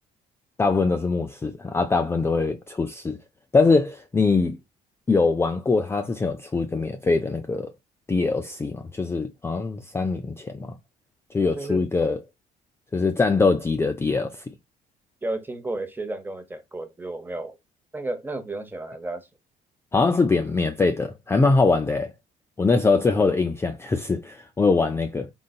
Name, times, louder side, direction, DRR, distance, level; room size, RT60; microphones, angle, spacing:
voice 1, 0.6-3.2 3.5-4.6 5.1-7.7 8.1-10.7 11.3-12.2 12.9-14.4 19.9-22.1 22.6-25.3, left 3 dB, 15° left, 0.4 m, -22 dB
voice 2, 11.5-11.9 15.2-17.6 17.9-19.3, right 2 dB, 10° right, 0.8 m, -32 dB
3.9 x 3.9 x 2.3 m
cardioid pair, 110°, 17 cm